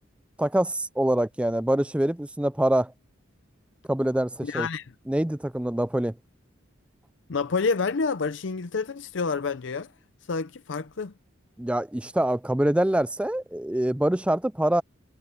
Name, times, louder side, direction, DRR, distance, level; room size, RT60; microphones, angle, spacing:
voice 1, 0.4-2.9 3.9-4.7 5.1-6.1 11.6-14.8, right 1 dB, 5° right, 0.4 m, -25 dB
voice 2, 4.4-4.8 7.3-9.9 10.3-11.1, left 4 dB, 65° left, 0.6 m, -28 dB
head